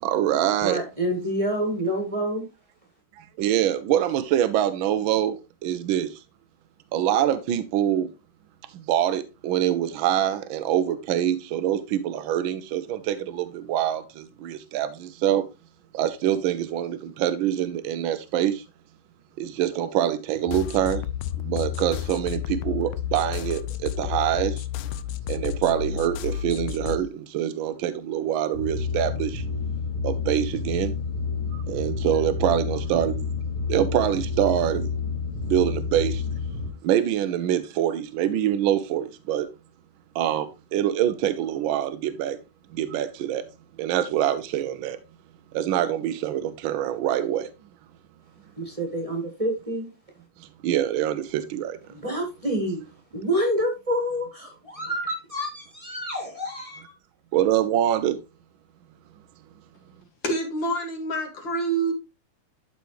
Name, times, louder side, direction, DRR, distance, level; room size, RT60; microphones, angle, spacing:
voice 1, 0.0-0.8 3.2-6.2 6.9-8.1 8.7-15.4 15.9-18.6 19.4-21.0 21.4-24.7 25.3-29.4 30.0-30.9 31.5-33.2 33.7-34.9 35.4-36.2 36.8-39.5 40.1-42.4 42.7-43.4 43.8-45.0 45.5-47.5 50.6-51.8 57.3-58.2, right 11 dB, 80° right, 1.4 m, -25 dB
voice 2, 0.6-2.4 48.6-49.9 51.9-52.8 53.1-56.9, equal, 20° right, 1.5 m, -28 dB
sound 1, 20.5-27.0, left 10 dB, 90° left, 1.4 m, -31 dB
sound 2, 28.5-36.7, left 5 dB, 35° left, 2.4 m, -29 dB
voice 3, 60.2-61.9, right 2 dB, 70° left, 2.6 m, -26 dB
12.5 x 4.3 x 3.1 m
omnidirectional pair, 2.2 m